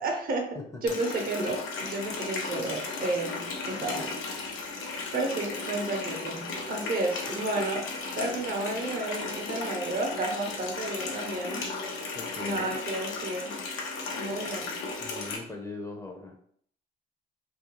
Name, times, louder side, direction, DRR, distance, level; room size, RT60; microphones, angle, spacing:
voice 1, 0.0-0.5 0.8-4.1 5.1-7.9 8.2-11.7 12.4-13.6 14.2-14.7, right 2 dB, 50° right, 2 dB, 0.6 m, -32 dB
Water tap faucet, 0.9-15.4, left 3 dB, 90° left, 0.6 m, -35 dB
voice 2, 12.1-12.8 14.4-14.6 15.0-16.4, left 3 dB, 15° left, 1 dB, 0.5 m, -41 dB
2.4 x 2.2 x 2.9 m, 0.64 s
cardioid pair, 90°, 20 cm